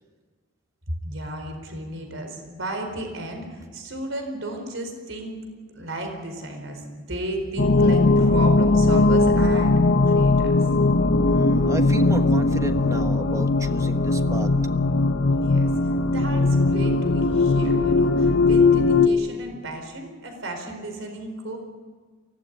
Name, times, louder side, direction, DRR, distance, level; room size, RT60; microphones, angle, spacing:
voice 1, 1.0-5.4 5.7-9.8 10.0-10.5 15.3-15.7 16.1-21.6, right 1 dB, 80° right, 5 dB, 4.5 m, -34 dB
sound 1, 7.6-19.1, left 3 dB, 70° left, 1.1 m, -19 dB
voice 2, 11.2-14.5, right 1 dB, 15° right, 7 dB, 1.3 m, -34 dB
24.0 x 17.5 x 9.3 m, 1.5 s
head